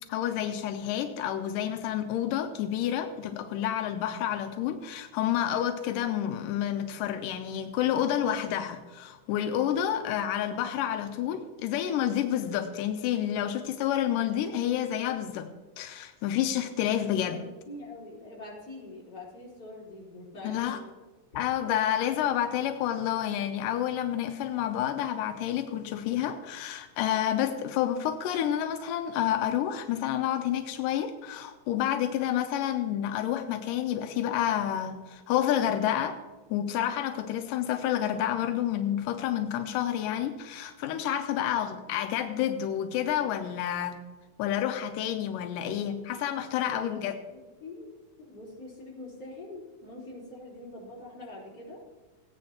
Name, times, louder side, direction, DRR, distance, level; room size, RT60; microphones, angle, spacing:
voice 1, 0.1-15.5 15.8-17.4 20.4-20.8 21.4-36.2 36.5-44.0 44.4-47.1, left 10 dB, 85° left, 7 dB, 2.3 m, -29 dB
voice 2, 17.3-20.9 46.6-47.0 47.3-51.8, left 2 dB, 30° left, -5 dB, 4.2 m, -44 dB
17.0 x 9.8 x 2.8 m, 1.3 s
omnidirectional pair, 3.7 m